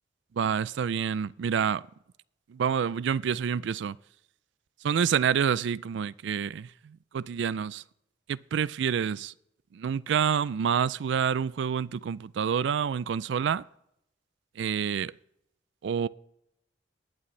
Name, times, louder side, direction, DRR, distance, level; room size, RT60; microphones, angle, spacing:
voice 1, 0.4-1.8 2.5-4.0 4.8-7.8 8.3-9.3 9.7-13.6 14.6-15.1 15.8-16.1, right 7 dB, 65° right, 0.3 m, -28 dB
19.5 x 8.6 x 3.2 m
head